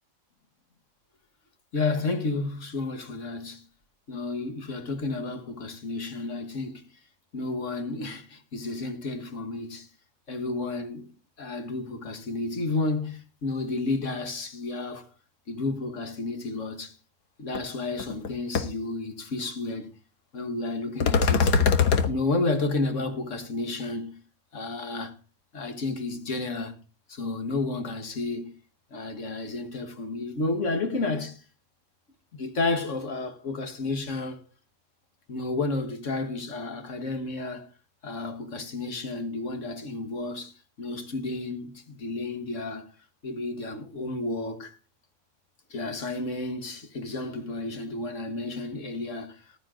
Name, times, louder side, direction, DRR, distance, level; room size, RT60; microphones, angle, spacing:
voice 1, 1.7-3.6 4.1-6.8 7.3-9.9 10.3-11.1 11.4-15.1 15.5-17.0 17.4-19.9 20.3-21.5 22.1-24.2 24.5-25.2 25.5-26.8 27.1-28.5 28.9-31.4 32.3-34.4 35.3-37.7 38.0-42.9 43.2-44.8 45.7-49.5, left 3 dB, 50° left, 1.7 m, -31 dB
sound 1, 17.5-17.6 18.0-18.3 18.5-18.6 21.0-22.1, left 5 dB, 80° left, 1.7 m, -21 dB
14.5 x 11.5 x 3.8 m
omnidirectional pair, 1.7 m